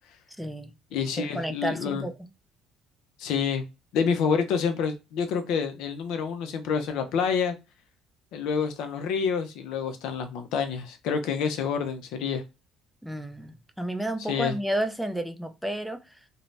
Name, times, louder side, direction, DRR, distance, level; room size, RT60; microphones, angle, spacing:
voice 1, 0.4-0.7 1.2-2.1 13.0-16.2, right 1 dB, ahead, 0.3 m, -31 dB
voice 2, 0.9-2.0 3.2-3.6 3.9-7.5 8.3-12.4 14.3-14.5, left 6 dB, 75° left, 0.4 m, -28 dB
2.5 x 2.0 x 3.2 m
cardioid pair, 125°, 0 cm